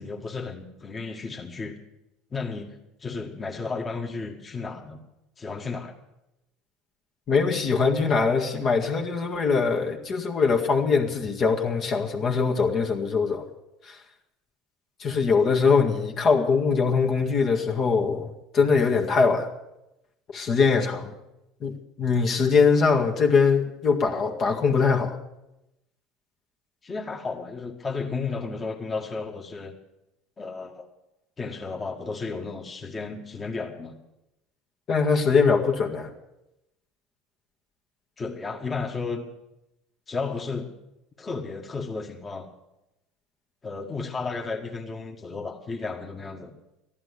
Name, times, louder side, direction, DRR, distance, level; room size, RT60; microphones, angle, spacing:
voice 1, 0.0-1.8 2.3-5.0 5.4-5.9 26.8-29.7 30.4-30.9 31.4-34.0 38.2-39.2 40.1-40.7 41.2-42.5 43.6-46.5, left 4 dB, 25° left, 2 dB, 1.8 m, -33 dB
voice 2, 7.3-13.5 13.9-14.0 15.0-19.5 20.3-21.1 21.6-25.2 34.9-36.1, left 5 dB, 50° left, 1 dB, 1.9 m, -22 dB
14.0 x 11.0 x 8.2 m, 0.90 s
hypercardioid pair, 85°, 0 cm